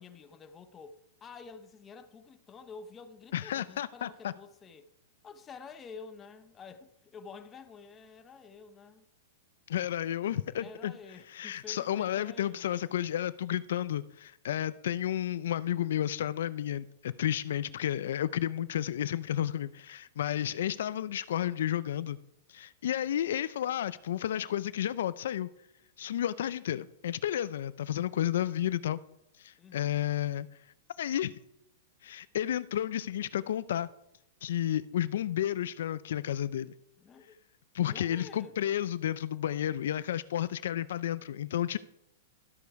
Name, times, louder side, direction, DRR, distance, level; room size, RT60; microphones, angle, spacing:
voice 1, 0.0-4.9 5.2-9.0 10.6-12.7 17.4-17.8 29.6-30.0 37.0-37.4 37.9-38.5, left 5 dB, 15° left, 0.7 m, -49 dB
voice 2, 3.3-4.3 9.7-10.9 11.3-22.2 22.5-25.5 26.0-29.0 29.4-30.5 31.0-31.3 32.0-33.9 34.4-36.7 37.7-41.8, left 11 dB, 70° left, 0.4 m, -32 dB
12.5 x 8.3 x 4.7 m
supercardioid pair, 165°, 0 cm